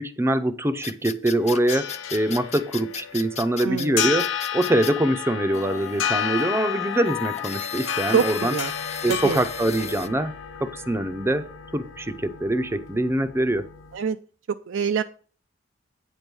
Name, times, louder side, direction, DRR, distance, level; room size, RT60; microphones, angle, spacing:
voice 1, 0.0-4.3 4.5-8.5 9.0-10.3 10.6-13.7, right 1 dB, 15° right, 10 dB, 0.6 m, -24 dB
sound 1, 0.8-4.9 5.5-10.1, left 6 dB, 35° left, 0.5 m, -36 dB
sound 2, 1.3-14.0, left 8 dB, 80° left, 0.8 m, -32 dB
voice 2, 3.6-4.1 8.1-8.7 9.1-9.4 13.9-14.2 14.5-15.0, right 6 dB, 80° right, 8 dB, 0.4 m, -25 dB
9.0 x 5.3 x 6.2 m, 0.41 s
head